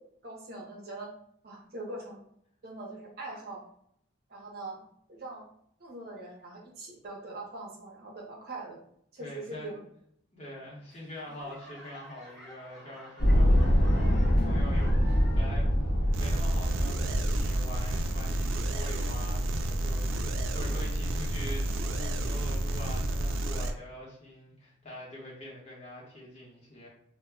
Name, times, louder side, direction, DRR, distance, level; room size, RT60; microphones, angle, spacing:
voice 1, 0.2-1.1 1.4-2.2 2.6-3.6 4.3-4.8 5.1-5.5 5.8-8.8 9.1-9.8, right 2 dB, 50° right, -1 dB, 0.6 m, -42 dB
voice 2, 9.2-9.7 10.3-15.7 16.2-26.9, left 1 dB, 35° left, -5 dB, 0.9 m, -44 dB
Laughter / Clapping / Crowd, 10.9-15.7 16.0-16.5 17.1-17.2, equal, ahead, 0.7 m, -51 dB
sound 1, 13.2-19.5, equal, 70° left, 0.6 m, -25 dB
sound 2, 16.1-23.7, right 1 dB, 85° right, 0.3 m, -31 dB
2.1 x 2.0 x 3.4 m, 0.70 s
head